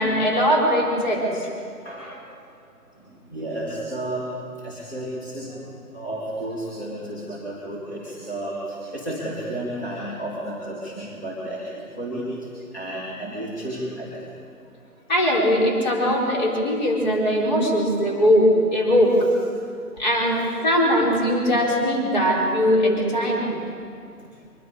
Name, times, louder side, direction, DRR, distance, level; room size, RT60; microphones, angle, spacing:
voice 1, 0.0-1.5 15.1-19.2 20.0-23.6, equal, 30° left, -3 dB, 4.6 m, -20 dB
voice 2, 1.8-2.3 2.8-15.0 16.9-17.0 19.5-20.0 23.8-24.5, right 1 dB, 10° left, -9 dB, 2.4 m, -33 dB
24.0 x 22.5 x 5.0 m, 2.3 s
figure-of-eight pair, 165°, 47 cm